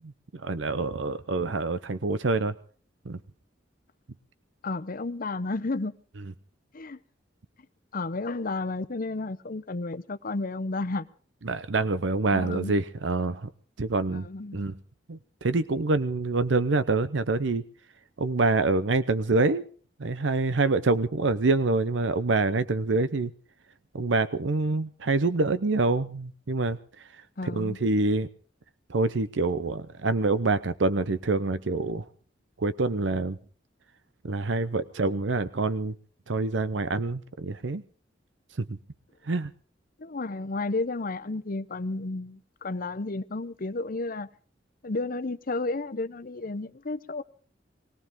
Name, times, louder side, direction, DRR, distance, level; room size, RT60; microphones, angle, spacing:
voice 1, 0.3-2.5 3.1-3.2 11.4-13.5 13.8-14.3 14.5-14.7 15.1-17.6 18.2-19.6 20.0-23.3 23.9-26.8 27.4-28.3 28.9-32.0 32.6-33.4 34.2-35.9 36.3-37.8 38.6-38.8 39.3-39.5, right 3 dB, 85° right, 0.7 m, -26 dB
voice 2, 4.6-5.9 6.7-7.0 7.9-11.1 12.3-12.7 14.1-14.6 27.4-27.8 40.0-44.3 44.8-47.2, left 3 dB, 50° left, 0.8 m, -32 dB
20.5 x 17.5 x 3.7 m
head